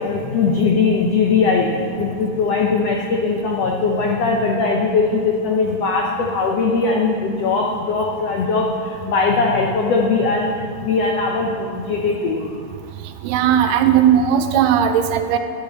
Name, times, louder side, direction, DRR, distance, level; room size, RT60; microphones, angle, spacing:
voice 1, 0.0-12.5, left 4 dB, 80° left, 0 dB, 1.4 m, -20 dB
voice 2, 13.2-15.4, right 9 dB, 80° right, 8 dB, 2.1 m, -16 dB
13.5 x 5.2 x 7.4 m, 2.2 s
omnidirectional pair, 4.0 m